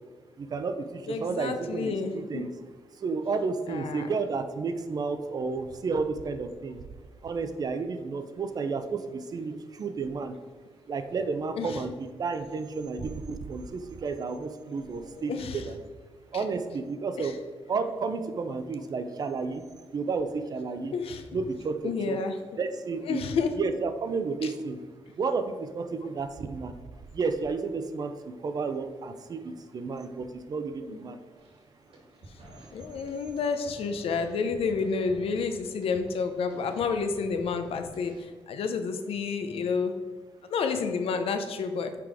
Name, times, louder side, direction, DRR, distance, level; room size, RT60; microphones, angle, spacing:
voice 1, 0.4-2.5 3.0-6.8 7.2-10.4 10.9-15.8 16.3-17.4 17.7-19.6 19.9-20.9 21.3-22.2 22.6-23.2 23.6-24.8 25.1-26.7 27.1-31.2, right 4 dB, 40° right, 9 dB, 0.5 m, -32 dB
voice 2, 1.1-2.5 3.7-4.1 11.5-11.8 14.9-15.7 16.3-16.4 17.2-17.4 20.9-21.2 21.8-22.4 23.0-23.6 24.4-24.5 30.8-31.0 32.7-38.1 38.5-39.9 40.5-41.9, left 5 dB, 85° left, 7 dB, 0.7 m, -30 dB
sound 1, 31.4-31.6 31.9-38.2, right 1 dB, 70° right, 2.0 m, -50 dB
6.0 x 5.0 x 4.7 m, 1.4 s
wide cardioid pair, 165°, 10 cm